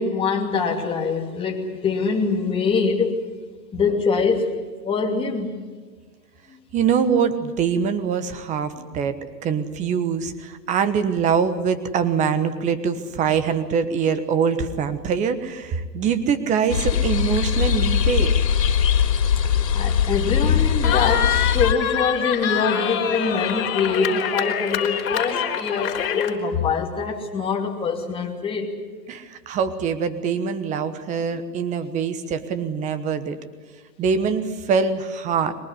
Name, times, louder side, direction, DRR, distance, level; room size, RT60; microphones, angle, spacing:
voice 1, 0.0-3.2 3.7-4.6 4.8-5.5 6.5-6.6 8.8-8.9 19.7-28.7, left 5 dB, 10° left, 0 dB, 2.7 m, -24 dB
voice 2, 6.7-18.3 29.1-33.4 34.0-35.5, right 6 dB, 15° right, 11 dB, 1.2 m, -23 dB
sound 1, 16.7-21.7, left 8 dB, 75° left, 2.9 m, -21 dB
Cheering, 20.8-26.3, left 9 dB, 55° left, 3.7 m, -25 dB
22.5 x 19.5 x 9.7 m, 1.4 s
hypercardioid pair, 150°, 49 cm